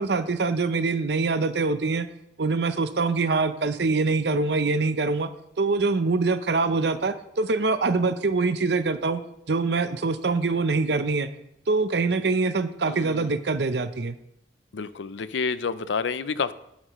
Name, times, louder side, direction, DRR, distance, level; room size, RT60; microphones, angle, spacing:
voice 1, 0.0-2.1 2.4-5.3 5.6-9.2 9.5-11.3 11.7-14.2, right 3 dB, 65° right, 11 dB, 0.7 m, -24 dB
voice 2, 12.9-13.4 14.7-16.5, left 5 dB, 75° left, 14 dB, 0.5 m, -29 dB
11.5 x 10.5 x 3.1 m, 0.80 s
head